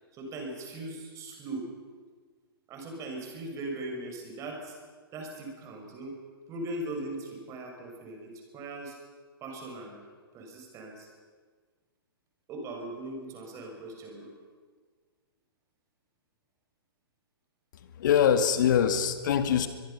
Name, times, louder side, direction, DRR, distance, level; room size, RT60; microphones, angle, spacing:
voice 1, 0.1-1.7 2.7-4.8 5.1-6.2 6.5-9.0 9.4-10.0 10.3-11.1 12.5-14.3, right 2 dB, 25° right, 2 dB, 5.9 m, -39 dB
voice 2, 18.0-19.7, left 8 dB, 50° left, 9 dB, 2.0 m, -23 dB
23.0 x 22.5 x 5.6 m, 1.5 s
figure-of-eight pair, 115°, 13 cm